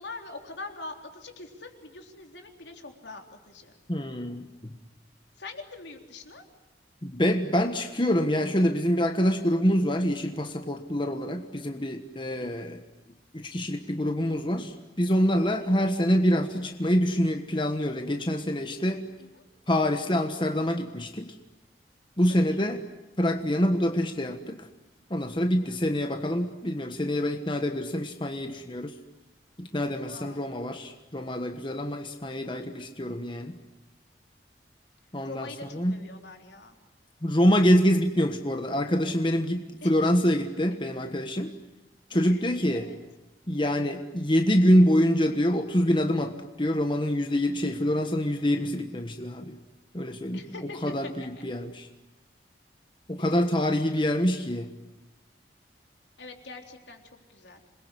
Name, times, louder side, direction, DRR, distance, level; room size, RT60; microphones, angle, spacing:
voice 1, 0.0-3.7 5.4-6.4 12.4-12.6 15.6-15.8 19.2-19.4 22.5-22.7 25.7-25.8 30.0-30.5 35.3-36.8 39.8-39.9 42.1-43.0 50.3-51.1 53.2-53.3 56.2-57.6, left 3 dB, 80° left, 4 dB, 3.7 m, -44 dB
voice 2, 3.9-4.7 7.0-12.8 13.3-19.0 19.7-21.3 22.2-22.8 23.2-24.7 25.1-28.9 29.6-33.6 35.1-36.0 37.2-41.5 42.1-42.9 43.5-49.6 49.9-50.4 50.8-51.9 53.1-54.7, equal, 25° left, 6 dB, 1.4 m, -26 dB
27.0 x 22.0 x 9.9 m, 0.99 s
head